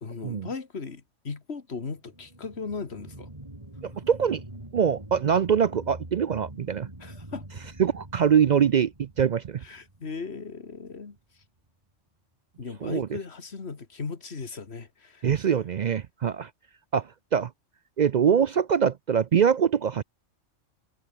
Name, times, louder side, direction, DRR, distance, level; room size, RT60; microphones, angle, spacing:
voice 1, 0.0-3.3 7.0-7.5 9.6-11.2 12.6-15.3, left 4 dB, 55° left, 2.2 m, -37 dB
sound 1, 2.0-11.0 11.4-11.5, right 1 dB, 25° right, 3.9 m, -45 dB
voice 2, 3.8-4.4 4.7-6.9 7.8-9.6 12.8-13.1 15.2-16.5 16.9-17.5 18.0-20.0, right 7 dB, 60° right, 0.4 m, -23 dB
omnidirectional pair, 1.3 m